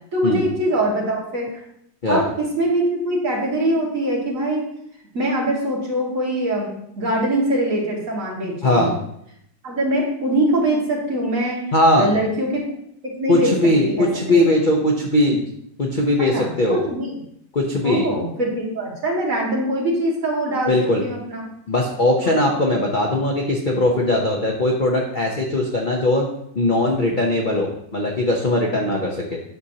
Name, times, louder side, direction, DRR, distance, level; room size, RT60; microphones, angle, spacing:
voice 1, 0.1-1.6 2.1-4.7 5.1-8.9 9.6-11.6 12.0-12.6 13.2-13.5 13.8-14.4 16.2-17.1 17.8-21.5 22.2-22.5, right 1 dB, 45° right, -4 dB, 2.3 m, -23 dB
voice 2, 8.6-8.9 11.7-12.1 13.3-15.4 15.8-16.8 17.5-18.1 20.7-21.0 21.7-26.3 26.5-29.4, left 1 dB, 40° left, 0 dB, 0.7 m, -19 dB
9.3 x 6.4 x 2.8 m, 0.73 s
omnidirectional pair, 1.9 m